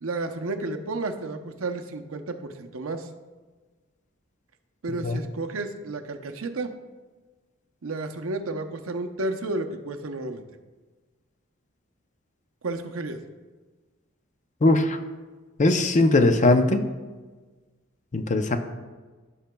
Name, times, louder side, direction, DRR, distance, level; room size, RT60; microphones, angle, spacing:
voice 1, 0.0-3.1 4.8-6.7 7.8-10.4 12.6-13.2, right 2 dB, 75° right, 6 dB, 0.7 m, -32 dB
voice 2, 14.6-15.0 15.6-16.8 18.1-18.6, left 2 dB, 35° left, 8 dB, 0.6 m, -20 dB
15.5 x 5.8 x 2.2 m, 1.3 s
head